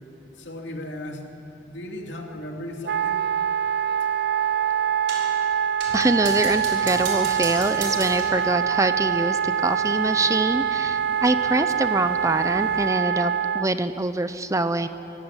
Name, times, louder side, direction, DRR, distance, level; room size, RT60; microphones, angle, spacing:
voice 1, 0.4-1.3 1.7-3.2, left 1 dB, 75° left, 2 dB, 2.9 m, -36 dB
Wind instrument woodwind instrument, 2.8-13.7, right 8 dB, 60° right, 0.4 m, -24 dB
sound 1, 5.1-5.4 5.8-8.4, right 4 dB, 90° right, 5.2 m, -35 dB
sound 2, 5.9-12.9, left 2 dB, 55° left, 1.1 m, -45 dB
voice 2, 5.9-14.9, right 2 dB, 20° right, 11 dB, 0.7 m, -24 dB
24.0 x 16.0 x 10.0 m, 2.9 s
head